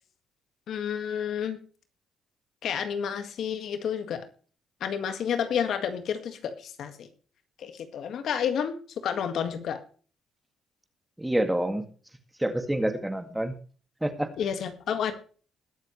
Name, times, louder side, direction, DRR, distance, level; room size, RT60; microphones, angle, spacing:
voice 1, 0.7-1.6 2.6-4.3 4.8-7.1 7.6-9.8 14.4-15.1, left 8 dB, 70° left, 8 dB, 1.9 m, -30 dB
voice 2, 11.2-11.8 12.4-13.5 14.0-14.3, right 1 dB, 10° right, 7 dB, 2.1 m, -27 dB
20.5 x 7.4 x 3.2 m, 0.40 s
cardioid pair, 90°, 0 cm